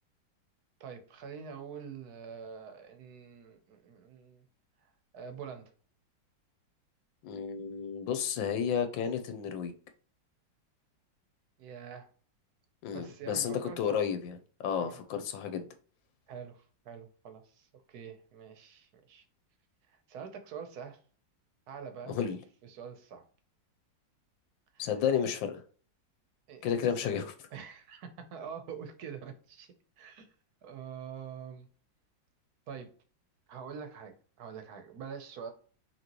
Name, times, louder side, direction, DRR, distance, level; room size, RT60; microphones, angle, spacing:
voice 1, 0.8-4.4 4.8-5.7 11.6-12.1 12.9-14.0 14.8-15.0 16.3-19.2 20.1-21.0 21.7-23.2 24.7-24.9 26.5-26.9 27.5-30.3 30.6-31.7 32.7-32.9 33.5-35.5, right 7 dB, 65° right, 1.2 m, -45 dB
voice 2, 7.2-9.7 12.8-14.4 14.6-15.7 22.1-22.4 24.8-25.6 26.6-27.3, left 7 dB, 85° left, 1.4 m, -32 dB
5.9 x 2.8 x 2.9 m
omnidirectional pair, 2.0 m